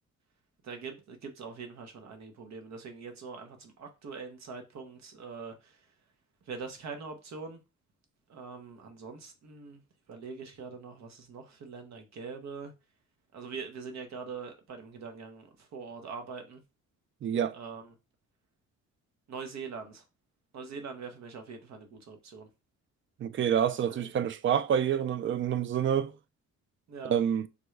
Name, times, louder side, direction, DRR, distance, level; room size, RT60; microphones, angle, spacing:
voice 1, 0.6-5.9 6.5-7.6 8.3-9.8 10.1-12.7 13.3-16.6 17.5-17.9 19.3-20.0 20.5-22.5 23.9-24.1 26.9-27.2, right 5 dB, 65° right, 1.1 m, -43 dB
voice 2, 17.2-17.6 23.2-26.1 27.1-27.5, right 8 dB, 40° right, 0.4 m, -27 dB
5.3 x 2.2 x 3.2 m
cardioid pair, 90°, 30 cm